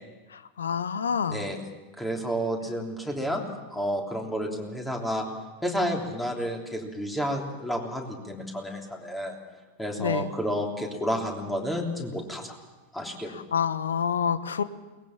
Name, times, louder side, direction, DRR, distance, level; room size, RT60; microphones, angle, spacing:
voice 1, 0.6-1.4 10.0-10.3 13.5-14.6, left 7 dB, 70° left, 14 dB, 1.0 m, -27 dB
voice 2, 1.3-1.6 2.0-3.4 3.7-5.2 5.6-9.3 9.8-12.6 12.9-13.4, equal, 5° left, 1 dB, 3.4 m, -30 dB
22.5 x 19.5 x 7.4 m, 1.2 s
figure-of-eight pair, 90°, 0 cm